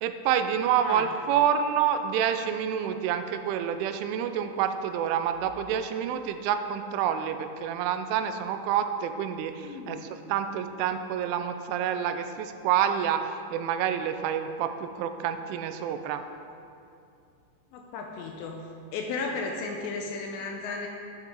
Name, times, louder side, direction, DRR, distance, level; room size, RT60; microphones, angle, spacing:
voice 1, 0.0-16.2, right 9 dB, 85° right, 8 dB, 3.0 m, -28 dB
voice 2, 0.8-1.1 9.6-10.1 17.7-18.6 18.9-20.9, left 4 dB, 80° left, 1 dB, 2.7 m, -34 dB
12.5 x 7.9 x 3.7 m, 2.5 s
omnidirectional pair, 5.5 m